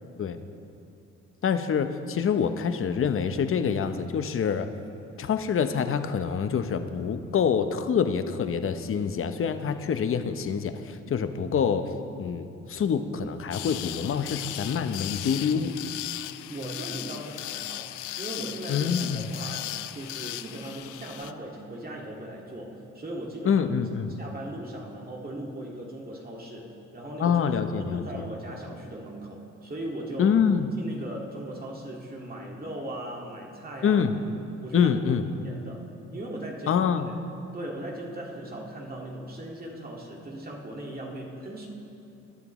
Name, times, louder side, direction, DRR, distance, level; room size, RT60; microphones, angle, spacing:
voice 1, 1.4-4.7 5.2-11.8 12.2-15.7 18.7-19.3 23.4-24.1 27.2-28.2 30.2-30.7 33.8-34.2 34.7-35.2 36.7-37.1, left 7 dB, 45° left, 9 dB, 0.8 m, -26 dB
sound 1, 13.5-21.3, left 15 dB, 90° left, 0.5 m, -37 dB
voice 2, 16.5-23.7 24.2-27.4 27.7-30.4 30.8-34.0 34.6-35.0 35.4-37.2 37.5-41.7, right 1 dB, 30° right, -2 dB, 2.0 m, -38 dB
20.5 x 10.5 x 3.1 m, 2.7 s
cardioid pair, 90°, 30 cm